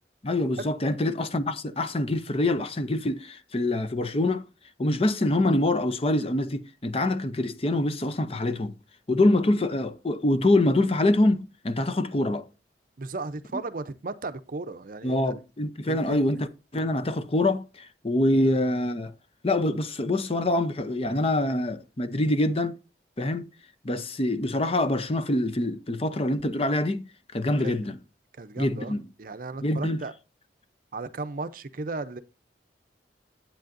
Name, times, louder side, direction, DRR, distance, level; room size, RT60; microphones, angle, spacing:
voice 1, 0.2-4.4 4.8-8.7 9.1-12.5 13.5-13.6 15.0-19.1 19.4-22.7 23.2-23.5 23.8-27.1 27.3-28.0 28.6-29.1 29.6-30.0, left 1 dB, 35° left, 0.7 m, -25 dB
voice 2, 13.0-15.2 15.9-16.2 18.3-18.5 27.6-27.8 28.4-30.1 30.9-32.2, right 3 dB, 50° right, 0.6 m, -35 dB
10.5 x 8.5 x 2.6 m
head